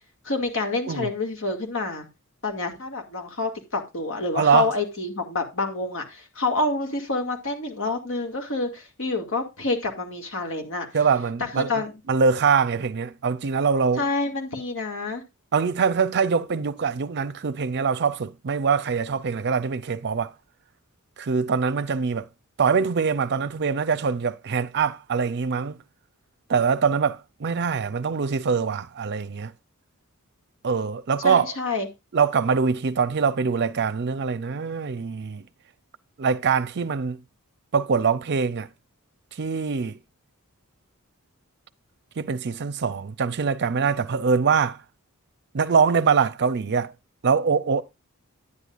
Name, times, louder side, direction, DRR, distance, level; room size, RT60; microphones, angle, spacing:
voice 1, 0.2-2.1 2.4-10.9 11.6-11.9 14.0-15.2 31.2-31.9, left 3 dB, 65° left, 2.2 m, -28 dB
voice 2, 4.4-4.7 10.9-11.7 12.1-14.0 15.5-20.3 21.2-22.3 22.6-25.8 26.5-29.5 30.6-31.5 32.1-35.4 36.2-37.2 37.7-38.7 39.4-40.0 42.2-44.8 45.5-46.9 47.2-47.8, right 5 dB, 50° right, 0.6 m, -23 dB
10.0 x 9.8 x 2.5 m
head